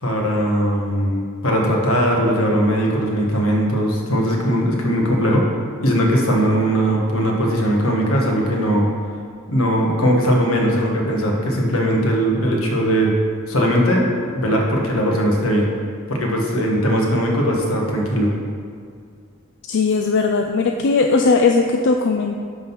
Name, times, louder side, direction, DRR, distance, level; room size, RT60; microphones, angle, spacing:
voice 1, 0.0-5.5 5.8-8.9 9.5-13.1 13.5-15.7 16.1-18.3, equal, 80° left, -1 dB, 1.5 m, -19 dB
voice 2, 19.7-22.4, left 4 dB, 55° left, 3 dB, 0.4 m, -18 dB
11.5 x 3.9 x 5.7 m, 2.1 s
head